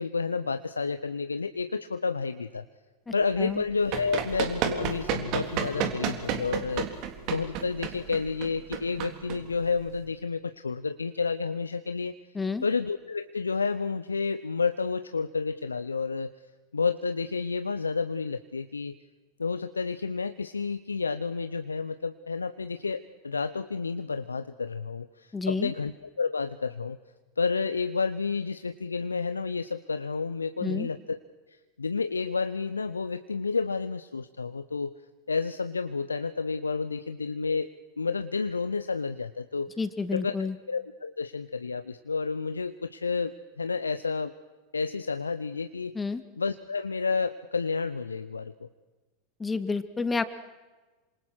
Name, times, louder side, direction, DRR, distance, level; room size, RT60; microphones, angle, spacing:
voice 1, 0.0-2.6 3.1-6.9 7.3-12.2 12.6-16.3 16.7-19.0 19.4-27.0 27.4-31.2 31.8-35.0 35.3-37.7 38.0-39.8 40.1-43.3 43.6-44.3 44.7-45.9 46.4-48.7, left 4 dB, 85° left, 11 dB, 0.8 m, -30 dB
voice 2, 3.1-3.6 12.3-12.6 25.3-25.7 30.6-30.9 39.8-40.6 45.9-46.2 49.4-50.2, left 4 dB, 15° left, 11 dB, 2.1 m, -30 dB
Run, 3.5-10.0, right 8 dB, 50° right, 3.5 m, -32 dB
28.5 x 26.5 x 6.4 m, 1.2 s
figure-of-eight pair, 90°, 0 cm